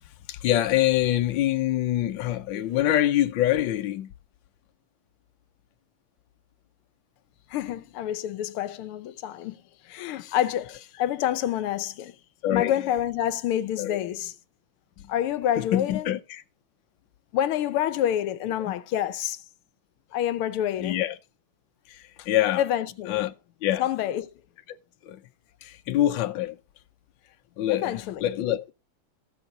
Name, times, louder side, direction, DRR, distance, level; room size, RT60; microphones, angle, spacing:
voice 1, 0.3-4.1 12.4-12.7 13.8-14.0 15.6-16.4 18.6-18.7 20.8-21.2 21.9-22.6 23.1-23.3 23.6-23.8 25.0-25.2 25.6-26.6 27.6-28.7, left 13 dB, 70° left, 1.4 m, -25 dB
voice 2, 7.5-12.2 12.5-14.3 15.1-16.1 17.3-19.4 20.1-21.0 22.6-23.3 23.8-24.3 27.7-28.2, left 11 dB, 85° left, 1.6 m, -28 dB
16.0 x 6.8 x 3.8 m
omnidirectional pair, 2.3 m